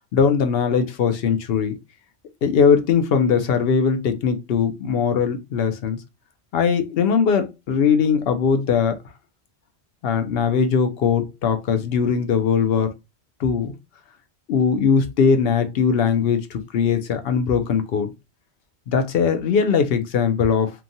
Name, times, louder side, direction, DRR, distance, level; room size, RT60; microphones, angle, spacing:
voice 1, 0.1-1.8 2.4-6.0 6.5-9.0 10.0-12.9 13.4-13.7 14.5-18.1 18.9-20.7, left 6 dB, 65° left, 0.7 m, -20 dB
2.9 x 2.2 x 2.5 m
omnidirectional pair, 1.1 m